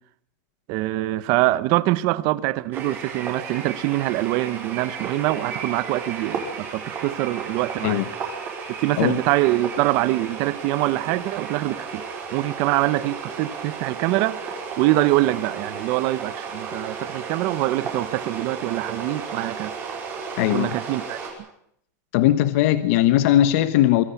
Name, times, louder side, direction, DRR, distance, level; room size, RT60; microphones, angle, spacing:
voice 1, 0.7-8.0 8.7-12.0 12.3-19.7 20.5-21.2, right 17 dB, 40° right, 0.9 m, -24 dB
sound 1, 2.7-21.3, right 5 dB, 25° right, 5.0 m, -34 dB
voice 2, 20.4-20.8 22.1-24.0, left 13 dB, 50° left, 1.1 m, -19 dB
23.0 x 16.5 x 8.3 m
supercardioid pair, 170°, 9 cm